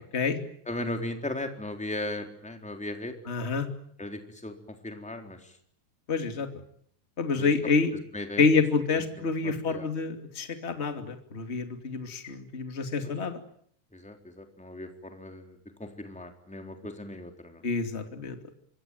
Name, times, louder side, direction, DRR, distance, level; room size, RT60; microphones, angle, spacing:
voice 1, 0.7-3.1 4.0-4.5 4.8-5.4 7.4-7.5 8.1-8.4 9.4-9.9 13.9-17.6, left 1 dB, ahead, 4 dB, 3.6 m, -37 dB
voice 2, 3.3-3.7 6.1-6.5 7.2-7.9 8.4-13.4 17.6-18.4, left 4 dB, 20° left, 6 dB, 2.7 m, -27 dB
25.0 x 25.0 x 9.2 m, 0.63 s
omnidirectional pair, 3.5 m